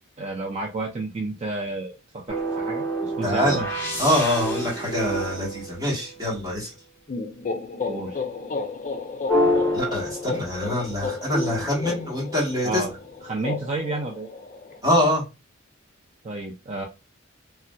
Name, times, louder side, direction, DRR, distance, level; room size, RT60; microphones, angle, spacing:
voice 1, 0.2-3.6 7.9-8.2 12.6-12.9 13.2-14.3 16.2-16.9, right 2 dB, 35° right, 0 dB, 0.4 m, -31 dB
sound 1, 2.3-6.4 9.3-10.8 11.3-13.1, equal, 10° left, 0.9 m, -28 dB
voice 2, 3.2-3.6 4.0-6.7 9.7-12.8 14.8-15.2, left 1 dB, 20° right, -6 dB, 1.4 m, -24 dB
sound 2, 7.1-14.8, left 4 dB, 40° left, 0.4 m, -33 dB
3.3 x 2.7 x 2.2 m, 0.27 s
head